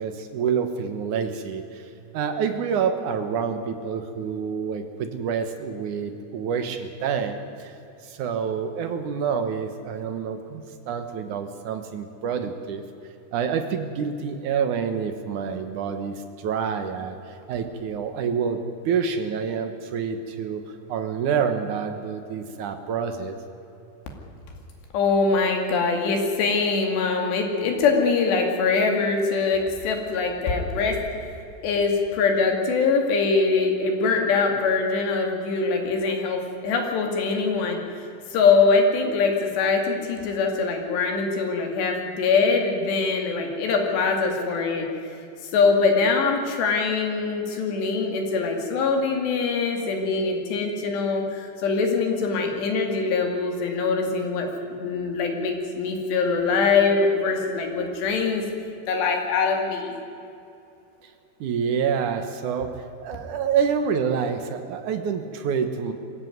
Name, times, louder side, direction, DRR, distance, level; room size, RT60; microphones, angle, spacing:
voice 1, 0.0-7.8 8.0-12.8 13.3-18.6 18.9-20.6 20.9-23.4 61.0-61.1 61.4-65.9, right 6 dB, 65° right, 7 dB, 2.2 m, -27 dB
voice 2, 24.9-31.0 31.6-37.8 38.3-44.9 45.5-58.4 58.9-60.0, left 4 dB, 85° left, 3 dB, 4.6 m, -23 dB
22.5 x 15.5 x 9.5 m, 2.7 s
omnidirectional pair, 4.8 m